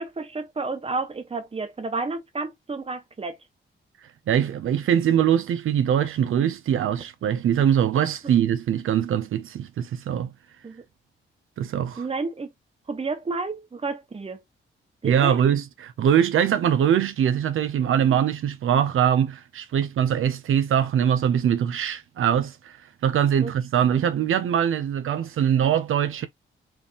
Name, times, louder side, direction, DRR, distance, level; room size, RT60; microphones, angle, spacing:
voice 1, 0.0-3.4 10.6-10.8 12.0-12.5 12.9-14.4 15.0-15.4 23.4-23.5 23.8-24.0, right 3 dB, 30° right, 1.2 m, -31 dB
voice 2, 4.3-10.3 11.6-12.1 15.0-26.3, right 9 dB, 75° right, 0.6 m, -22 dB
4.4 x 3.4 x 2.9 m
cardioid pair, 100°, 21 cm